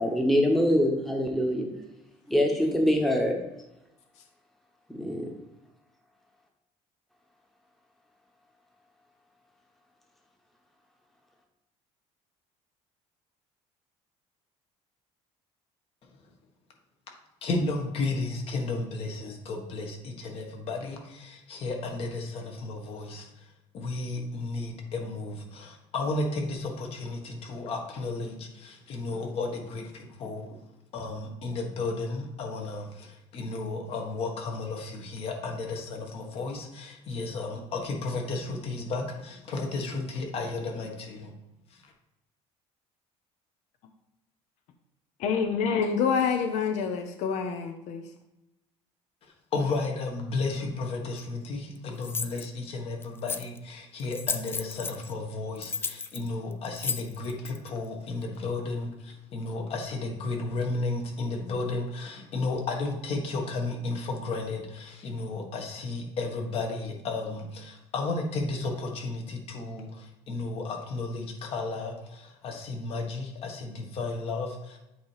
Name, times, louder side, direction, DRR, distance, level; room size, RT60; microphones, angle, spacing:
voice 1, 0.0-1.6 2.3-3.3 4.9-5.3, equal, ahead, 1 dB, 1.0 m, -24 dB
voice 2, 17.4-30.6 30.9-41.3 41.7-41.9 49.5-74.8, left 3 dB, 50° left, 2 dB, 1.4 m, -33 dB
voice 3, 45.2-48.0, left 6 dB, 70° left, 6 dB, 0.7 m, -27 dB
sound 1, 51.2-51.3 52.0-52.5 53.0-53.6 54.0-55.1 55.6-57.7, left 5 dB, 20° left, 0.4 m, -33 dB
8.2 x 3.0 x 4.8 m, 0.92 s
cardioid pair, 130°, 12 cm